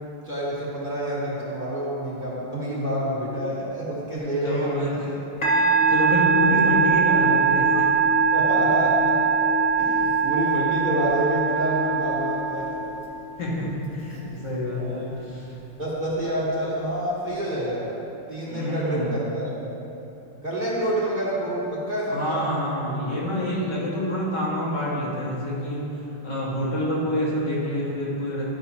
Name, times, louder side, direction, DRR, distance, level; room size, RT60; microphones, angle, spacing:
voice 1, 0.2-4.9 6.5-6.6 8.3-9.1 9.8-13.0 14.7-15.1 15.8-17.9 18.3-19.6 20.4-22.4, right 1 dB, 30° right, -8 dB, 1.4 m, -28 dB
voice 2, 4.4-5.0 5.4-7.8 13.4-15.6 18.5-19.1 22.1-25.8 26.2-28.4, equal, 65° left, -6 dB, 2.2 m, -27 dB
Musical instrument, 5.4-13.0, right 5 dB, 25° left, 1.3 m, -21 dB
12.0 x 5.5 x 2.8 m, 2.9 s
omnidirectional pair, 2.0 m